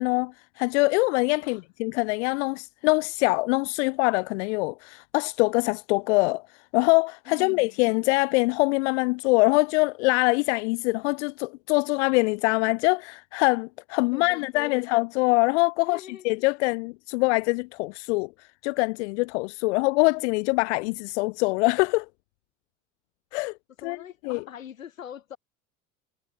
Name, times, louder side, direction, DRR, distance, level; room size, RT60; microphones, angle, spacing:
voice 1, 0.0-22.1 23.3-23.5 23.8-24.0 24.2-24.4, left 26 dB, 60° left, 0.6 m, -24 dB
voice 2, 7.3-7.8 14.1-14.8 15.8-16.3 23.8-25.4, left 9 dB, 80° left, 7.0 m, -43 dB
figure-of-eight pair, 65°, 39 cm